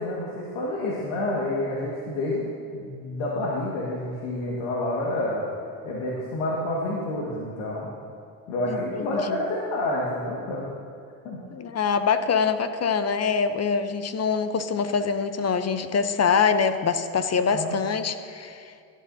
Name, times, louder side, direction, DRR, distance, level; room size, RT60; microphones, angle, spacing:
voice 1, 0.0-2.4 2.7-5.4 5.8-7.9 8.5-10.6 11.2-11.4 17.5-17.8, left 1 dB, 75° left, -4 dB, 1.8 m, -28 dB
voice 2, 8.7-9.4 11.5-18.8, left 6 dB, 30° left, 10 dB, 0.7 m, -24 dB
15.5 x 10.0 x 2.7 m, 2.4 s
supercardioid pair, 75°, 50 cm